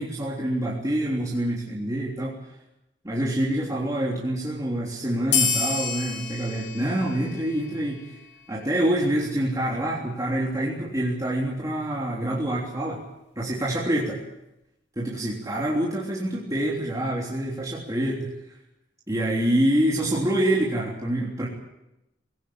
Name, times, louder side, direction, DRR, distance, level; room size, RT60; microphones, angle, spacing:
voice 1, 0.0-2.3 3.0-8.1 8.5-13.0 13.3-14.2 14.9-18.3 19.1-21.5, right 1 dB, 20° right, -5 dB, 3.4 m, -26 dB
sound 1, 5.3-8.3, left 6 dB, 70° left, 2.6 m, -29 dB
20.5 x 17.0 x 8.8 m, 0.92 s
head